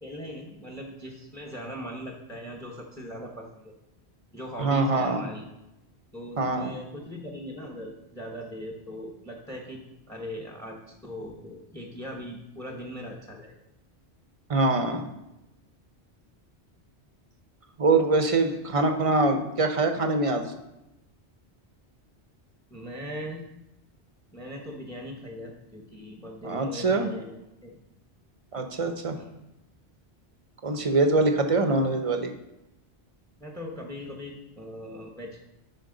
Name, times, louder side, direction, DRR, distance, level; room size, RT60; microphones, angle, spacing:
voice 1, 0.0-3.7 4.3-5.4 6.1-13.5 18.4-18.5 22.7-23.5 24.3-27.4 27.6-27.8 29.2-29.4 33.4-35.4, equal, 5° left, 1 dB, 0.9 m, -40 dB
voice 2, 4.6-5.2 6.4-6.7 14.5-15.1 17.8-20.5 26.4-27.1 28.5-29.2 30.6-32.3, right 3 dB, 35° right, 6 dB, 0.7 m, -24 dB
11.0 x 4.7 x 3.8 m, 0.91 s
omnidirectional pair, 1.1 m